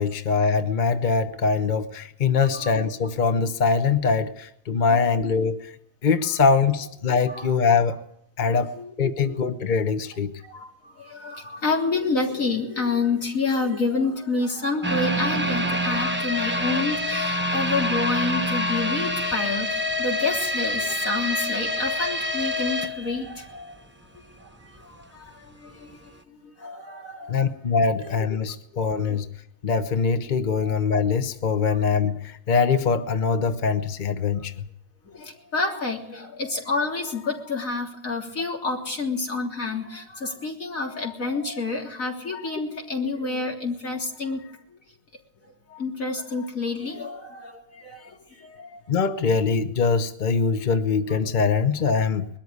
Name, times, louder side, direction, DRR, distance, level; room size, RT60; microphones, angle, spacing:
voice 1, 0.0-5.7 6.0-8.0 8.4-10.3 27.3-29.3 29.6-34.7 48.9-52.3, left 5 dB, 40° left, 9 dB, 1.1 m, -23 dB
voice 2, 2.4-2.7 4.9-5.0 7.3-7.5 8.7-8.9 9.2-9.4 10.5-10.7 11.1-23.7 26.6-27.4 29.1-29.2 30.6-30.7 35.2-44.4 45.7-48.0 48.6-48.7, left 3 dB, 85° left, 0 dB, 3.9 m, -28 dB
sound 1, 14.8-23.8 24.1-24.2 24.7-24.8, left 1 dB, 10° right, 1.0 m, -26 dB
21.5 x 13.5 x 9.6 m, 0.70 s
omnidirectional pair, 1.4 m